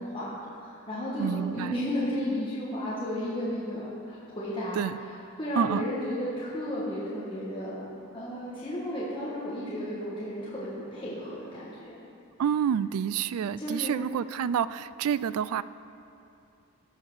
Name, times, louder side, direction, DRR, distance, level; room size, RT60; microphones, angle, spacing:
voice 1, 0.0-7.9 8.1-12.0 13.6-13.9, equal, 25° left, -8 dB, 1.5 m, -33 dB
voice 2, 1.2-1.8 4.8-5.0 5.6-5.8 12.4-15.6, right 8 dB, 80° right, 17 dB, 0.3 m, -28 dB
15.5 x 5.7 x 6.2 m, 2.7 s
head